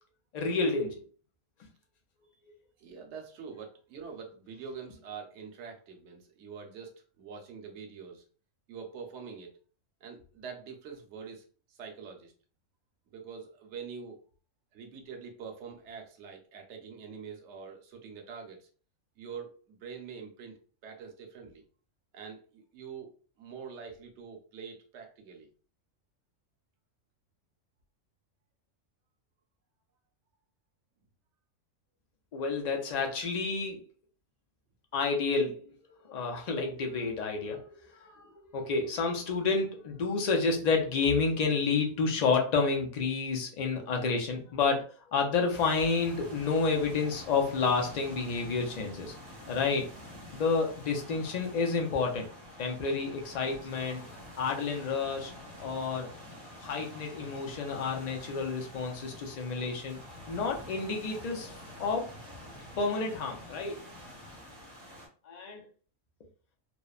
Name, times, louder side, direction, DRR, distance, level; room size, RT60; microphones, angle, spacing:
voice 1, 0.3-1.0 32.3-33.8 34.9-35.6 36.0-37.7 37.9-38.2 38.5-49.1 49.5-49.8 50.3-52.3 52.6-54.0 54.4-55.3 55.6-56.1 56.6-60.0 60.3-61.5 61.8-62.1 62.8-63.8 65.2-65.6, left 4 dB, 70° left, 2 dB, 0.4 m, -30 dB
voice 2, 2.8-8.2 8.7-9.5 10.0-12.3 13.1-14.2 14.7-18.7 19.2-20.5 20.8-21.6 22.1-23.1 23.4-25.5 38.2-38.3, right 6 dB, 65° right, 3 dB, 0.9 m, -45 dB
sound 1, 45.5-65.1, left 1 dB, 25° right, 0.6 m, -47 dB
2.9 x 2.0 x 2.3 m, 0.40 s
omnidirectional pair, 1.4 m